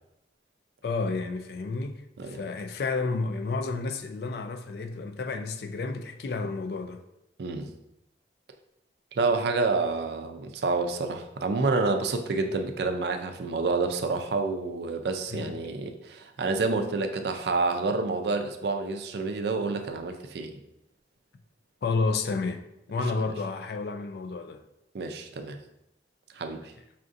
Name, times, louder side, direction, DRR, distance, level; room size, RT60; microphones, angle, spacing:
voice 1, 0.8-7.0 15.3-15.6 21.8-24.6, left 3 dB, 60° left, 0.3 m, -31 dB
voice 2, 9.1-20.6 24.9-25.6 26.4-26.6, right 3 dB, 70° right, 0.4 m, -28 dB
5.6 x 2.5 x 2.5 m
head